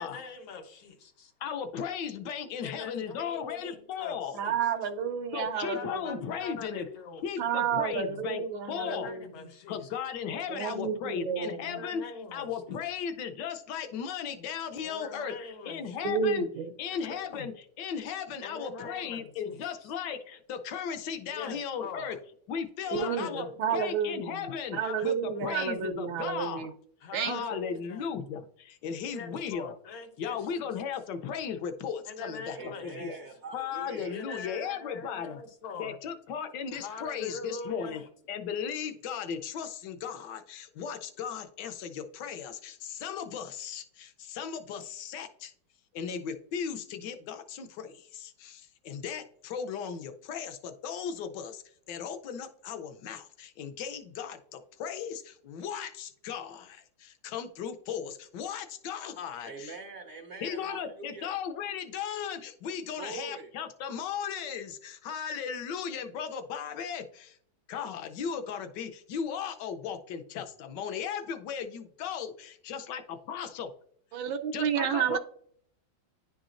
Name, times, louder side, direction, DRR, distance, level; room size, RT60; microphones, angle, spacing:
voice 1, 0.0-1.3 2.6-4.5 5.5-7.8 8.7-9.8 11.7-13.0 14.8-16.1 16.9-17.5 18.4-19.9 21.3-22.2 23.0-23.9 24.7-25.7 27.0-28.1 29.0-30.6 32.0-33.1 34.0-36.0 36.3-36.4 36.7-38.1, left 4 dB, 85° left, 1.8 m, -43 dB
voice 2, 1.4-4.4 5.3-6.9 7.2-8.4 8.7-9.1 9.7-12.0 12.3-15.3 15.6-16.5 16.8-22.2 22.5-26.7 27.2-29.8 30.2-32.6 32.8-33.1 33.5-35.4 35.8-38.0 38.3-45.5 45.9-51.6 51.9-59.8 60.4-67.4 67.7-73.7 74.5-75.2, left 7 dB, 70° left, 1.2 m, -36 dB
voice 3, 4.3-6.2 7.4-9.5 10.5-11.8 16.0-16.7 22.9-24.4 24.7-26.7 27.1-27.6 74.1-75.2, right 7 dB, 80° right, 1.5 m, -31 dB
voice 4, 32.5-34.1 59.4-61.3 63.0-63.5, right 4 dB, 60° right, 0.8 m, -43 dB
10.0 x 4.0 x 2.5 m
omnidirectional pair, 2.2 m